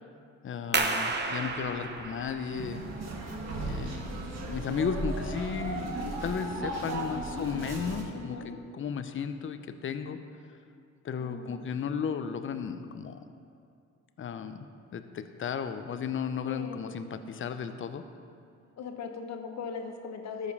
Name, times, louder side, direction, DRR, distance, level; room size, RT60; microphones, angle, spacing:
voice 1, 0.4-2.8 3.6-8.4 8.7-10.2 11.0-13.2 14.2-14.7 14.9-18.1, left 6 dB, 40° left, 9 dB, 0.7 m, -34 dB
sound 1, 0.7-6.1, right 3 dB, 35° right, 1.0 m, -34 dB
sound 2, 2.5-8.0, right 2 dB, 55° right, 1.9 m, -36 dB
voice 2, 8.1-8.6 11.2-11.7 16.4-17.0 18.8-20.5, left 6 dB, 60° left, 5 dB, 1.1 m, -39 dB
13.5 x 5.3 x 5.5 m, 2.3 s
cardioid pair, 90°, 30 cm